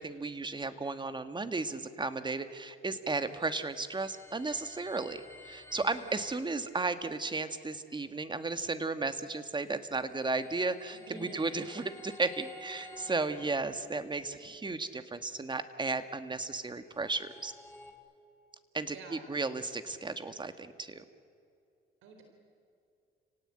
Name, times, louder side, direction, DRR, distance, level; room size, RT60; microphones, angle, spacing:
voice 1, 0.0-17.5 18.7-21.0, right 3 dB, 25° right, 10 dB, 1.7 m, -34 dB
sound 1, 3.2-6.9 9.8-14.2 16.7-17.9, left 1 dB, 10° left, 3.8 m, -53 dB
voice 2, 5.7-6.1 10.9-11.4 18.9-19.3 22.0-22.2, right 3 dB, 85° right, 4 dB, 4.0 m, -49 dB
29.5 x 18.0 x 8.9 m, 2.5 s
cardioid pair, 90°, 20 cm